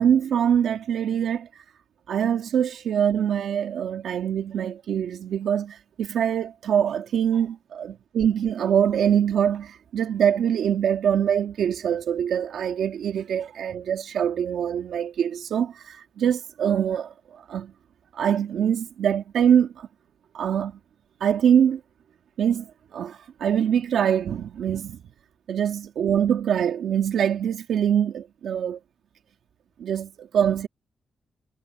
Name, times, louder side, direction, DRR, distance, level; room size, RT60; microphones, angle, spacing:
voice 1, 0.0-1.6 2.1-7.6 8.1-17.7 18.1-19.9 20.3-20.8 21.2-21.8 22.4-22.7 22.9-25.0 25.5-28.8 29.8-30.7, right 8 dB, 80° right, 1.7 m, -24 dB
cardioid pair, 85°, 0 cm